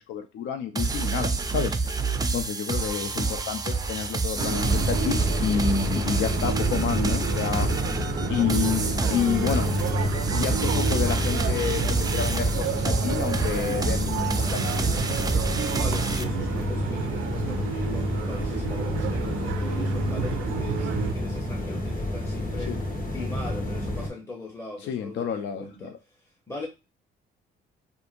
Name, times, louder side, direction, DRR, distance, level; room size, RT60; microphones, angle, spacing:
voice 1, 0.0-2.0 2.3-7.7 8.3-8.8 9.1-9.7 10.3-11.8 12.1-14.8 22.7-22.8 24.9-26.0, left 8 dB, 65° left, 0.4 m, -29 dB
sound 1, 0.8-16.2, right 4 dB, 20° right, 0.4 m, -28 dB
sound 2, 4.4-24.1, left 1 dB, 40° left, 1.2 m, -29 dB
sound 3, 4.4-21.2, right 8 dB, 75° right, 0.4 m, -32 dB
voice 2, 15.7-22.8 23.1-26.2 26.5-26.7, left 3 dB, 15° left, 0.9 m, -40 dB
2.7 x 2.5 x 2.5 m
supercardioid pair, 65°, 21 cm